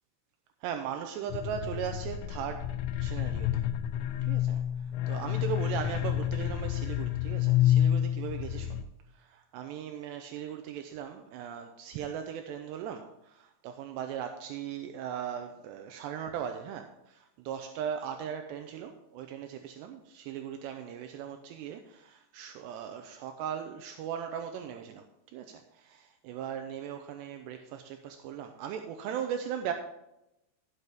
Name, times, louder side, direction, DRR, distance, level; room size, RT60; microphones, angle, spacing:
voice 1, 0.6-2.7 3.0-3.6 4.3-4.6 5.1-8.8 9.2-25.0 25.3-29.7, right 8 dB, 80° right, 6 dB, 2.7 m, -38 dB
sound 1, 1.3-8.8, left 11 dB, 85° left, 3.0 m, -29 dB
13.0 x 8.4 x 3.5 m, 0.88 s
omnidirectional pair, 5.2 m